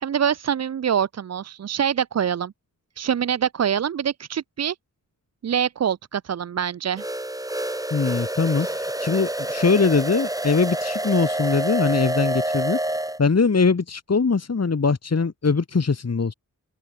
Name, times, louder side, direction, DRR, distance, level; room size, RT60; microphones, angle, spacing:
voice 1, 0.0-2.5 3.0-4.8 5.4-7.1 8.6-8.7, right 8 dB, 50° right, 0.5 m, -25 dB
sound 1, 7.0-13.2, right 1 dB, 10° right, 1.8 m, -27 dB
voice 2, 7.9-12.8 13.2-16.3, left 4 dB, 50° left, 1.8 m, -22 dB
open air
wide cardioid pair, 65°, 33 cm